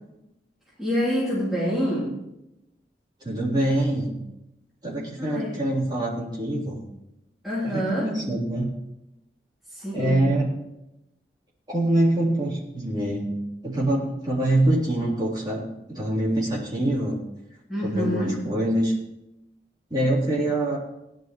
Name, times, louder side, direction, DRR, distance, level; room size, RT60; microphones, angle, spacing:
voice 1, 0.8-2.1 5.2-5.6 7.4-8.1 9.7-10.3 17.7-18.4, equal, ahead, -10 dB, 3.4 m, -26 dB
voice 2, 3.2-4.2 4.8-6.8 7.6-8.7 9.9-10.5 11.7-17.2 17.8-18.9 19.9-20.8, right 1 dB, 25° right, -7 dB, 3.7 m, -25 dB
18.0 x 11.0 x 3.2 m, 0.92 s
head